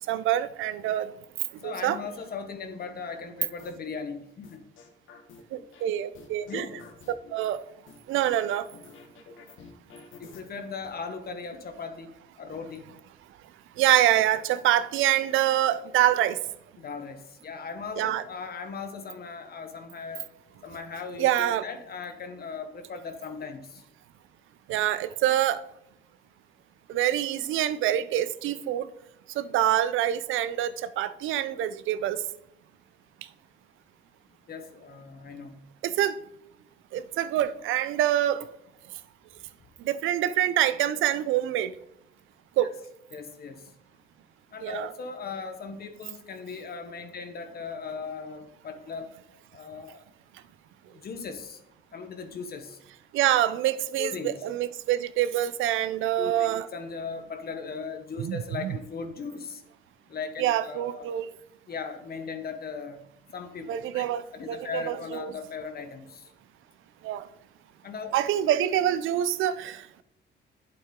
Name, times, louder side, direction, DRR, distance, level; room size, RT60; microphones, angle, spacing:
voice 1, 0.1-1.1 1.6-2.0 5.5-6.7 7.3-7.6 8.1-8.7 13.8-16.4 18.0-18.2 21.2-21.6 24.7-25.6 26.9-28.9 29.3-32.2 35.8-36.2 36.9-38.5 39.8-41.7 42.6-42.7 44.6-44.9 53.1-56.7 58.2-58.8 60.4-61.3 63.7-65.3 67.0-67.2 68.1-70.0, right 12 dB, 85° right, 0.5 m, -26 dB
voice 2, 1.6-4.6 6.5-6.7 10.2-12.9 16.8-20.2 20.6-23.8 34.5-35.6 43.1-43.7 44.5-49.1 49.5-50.0 50.9-51.6 51.9-52.8 54.0-54.3 56.2-59.6 60.1-61.1 61.7-63.0 63.3-64.1 64.3-66.3 67.8-68.1, left 5 dB, 50° left, 1.1 m, -38 dB
sound 1, 3.6-3.9 4.4-5.9 6.1-7.4 7.9-10.4, left 5 dB, 80° left, 1.3 m, -49 dB
8.2 x 7.7 x 3.7 m
cardioid pair, 90°, 20 cm